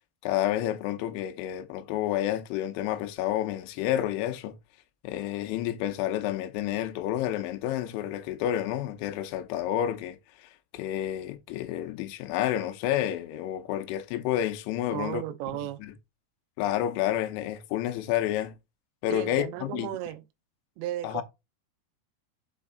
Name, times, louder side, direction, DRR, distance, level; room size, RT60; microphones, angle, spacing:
voice 1, 0.2-4.6 5.0-15.2 15.8-15.9 16.6-18.6 19.0-19.9 21.0-21.2, left 12 dB, 90° left, 3.2 m, -30 dB
voice 2, 14.9-15.8 19.1-20.2 20.8-21.2, right 13 dB, 80° right, 2.9 m, -34 dB
6.4 x 5.0 x 3.8 m
omnidirectional pair, 5.2 m